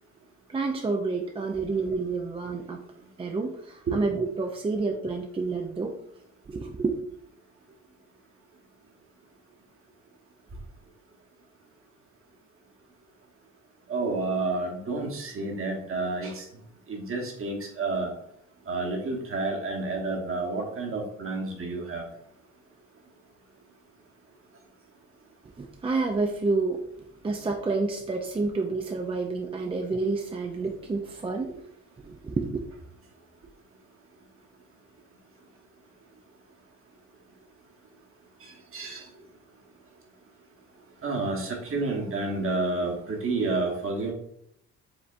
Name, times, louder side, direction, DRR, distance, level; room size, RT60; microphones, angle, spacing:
voice 1, 0.5-2.8 3.2-6.0 6.5-7.0 25.6-26.9 27.2-31.6 32.0-32.6, right 3 dB, 20° right, 2 dB, 0.4 m, -29 dB
voice 2, 13.9-16.4 16.9-18.1 18.7-22.0 38.4-39.0 41.0-44.1, right 3 dB, 45° right, 0 dB, 1.2 m, -30 dB
5.0 x 3.3 x 2.5 m, 0.74 s
cardioid pair, 90°, 30 cm